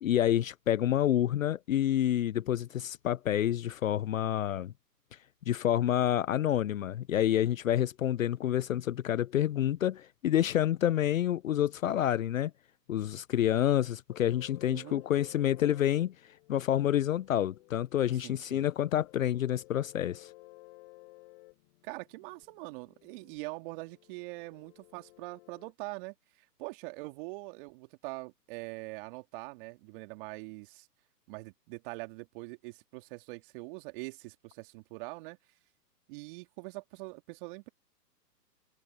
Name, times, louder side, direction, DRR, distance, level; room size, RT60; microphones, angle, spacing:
voice 1, 0.0-4.7 5.5-12.5 12.9-16.1 16.5-20.3, left 11 dB, 55° left, 0.7 m, -28 dB
sound 1, 14.1-25.7, left 24 dB, 35° left, 7.3 m, -57 dB
voice 2, 14.7-15.0 18.1-18.7 21.8-30.9 31.3-35.4 36.1-37.7, right 26 dB, 30° right, 2.7 m, -43 dB
hypercardioid pair, 135°, 50 cm